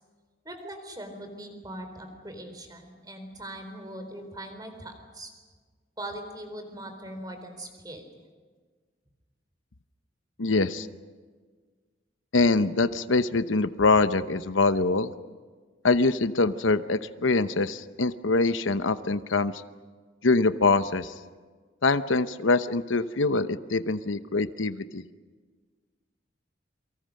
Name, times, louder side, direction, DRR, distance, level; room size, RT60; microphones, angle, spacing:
voice 1, 0.4-5.3 6.0-8.0, right 1 dB, 20° right, 6 dB, 4.1 m, -41 dB
voice 2, 10.4-10.9 12.3-15.1 15.8-19.5 20.2-21.1 21.8-25.0, left 3 dB, 90° left, 12 dB, 0.9 m, -24 dB
28.0 x 24.5 x 6.5 m, 1.5 s
head